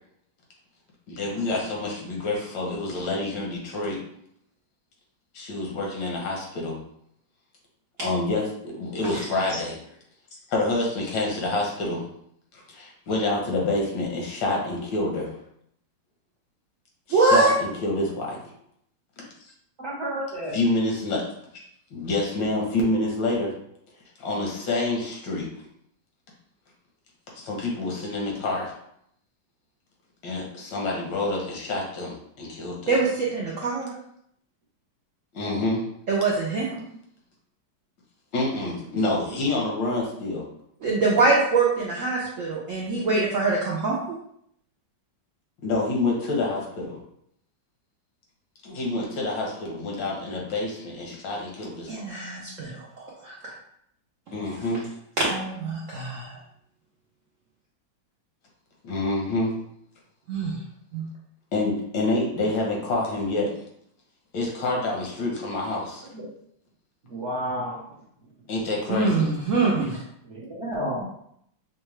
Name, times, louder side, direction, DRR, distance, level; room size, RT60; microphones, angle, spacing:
voice 1, 1.1-4.0 5.3-6.8 8.0-9.8 10.5-12.1 12.5-15.3 17.1-18.4 20.5-21.2 21.9-23.5 24.2-25.5 27.4-28.7 30.2-33.0 35.3-35.8 38.3-40.4 45.6-47.0 48.6-52.0 54.3-54.9 58.8-59.5 61.5-63.5 64.3-66.0 68.5-69.3, left 2 dB, 80° left, -1 dB, 1.7 m, -27 dB
voice 2, 17.1-17.5 32.9-33.9 36.1-36.8 40.8-44.2 51.9-52.7 53.0-53.5 55.2-56.4 60.3-60.6 60.9-61.0 68.9-70.0, right 3 dB, 70° right, -5 dB, 0.8 m, -24 dB
voice 3, 19.8-20.6 35.4-35.6 66.1-66.3 67.0-67.8 70.2-71.1, equal, 50° right, -4 dB, 1.0 m, -31 dB
5.5 x 2.2 x 3.1 m, 0.71 s
omnidirectional pair, 2.0 m